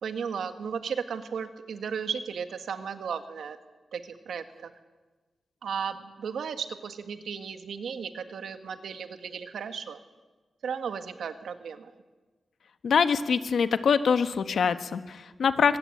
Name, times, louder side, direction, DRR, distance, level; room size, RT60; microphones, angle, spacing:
voice 1, 0.0-3.6 3.9-4.7 5.6-10.0 10.6-11.9, right 6 dB, 85° right, 8 dB, 1.8 m, -35 dB
voice 2, 12.8-15.8, left 6 dB, 75° left, 10 dB, 1.4 m, -24 dB
24.0 x 19.5 x 8.6 m, 1.3 s
wide cardioid pair, 100°, 0 cm